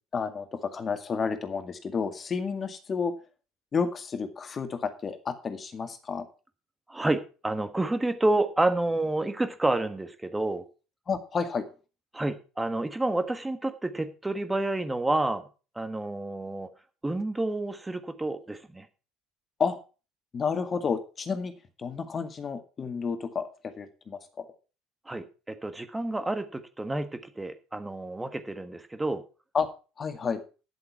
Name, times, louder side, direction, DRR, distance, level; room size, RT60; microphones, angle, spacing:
voice 1, 0.1-3.1 3.7-6.3 11.1-11.7 19.6-19.8 20.3-21.5 21.8-24.5 29.5-29.7 30.0-30.4, left 5 dB, 35° left, 8 dB, 2.0 m, -31 dB
voice 2, 6.9-10.6 12.1-15.4 15.7-16.7 17.0-18.9 25.1-29.2, right 2 dB, 10° right, 9 dB, 1.5 m, -29 dB
10.5 x 7.9 x 5.8 m, 0.34 s
hypercardioid pair, 65°, 0 cm